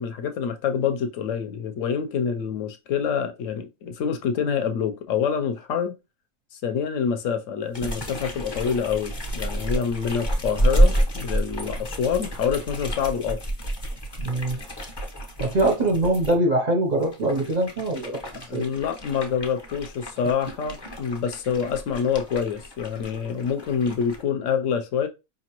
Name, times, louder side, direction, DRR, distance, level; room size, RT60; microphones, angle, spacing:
voice 1, 0.0-6.0 6.5-13.4 18.5-25.1, left 7 dB, 65° left, 1.0 m, -26 dB
sound 1, 7.7-16.4 16.9-24.2, right 1 dB, 25° left, 0.6 m, -29 dB
voice 2, 14.2-14.6 15.4-18.2 18.5-18.7, right 1 dB, 45° right, 0.6 m, -23 dB
5.0 x 2.8 x 2.9 m
omnidirectional pair, 1.5 m